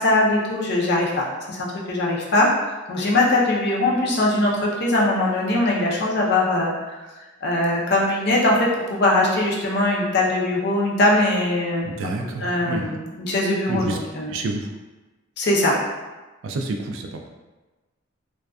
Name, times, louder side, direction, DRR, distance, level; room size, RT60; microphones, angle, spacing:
voice 1, 0.0-2.5 2.9-7.0 7.4-11.9 12.4-14.3 15.4-15.7, left 2 dB, 55° left, -3 dB, 0.5 m, -21 dB
voice 2, 11.8-12.9 13.7-14.0 14.3-14.7 16.4-17.3, right 3 dB, 70° right, 3 dB, 0.3 m, -29 dB
2.5 x 2.2 x 2.3 m, 1.2 s
head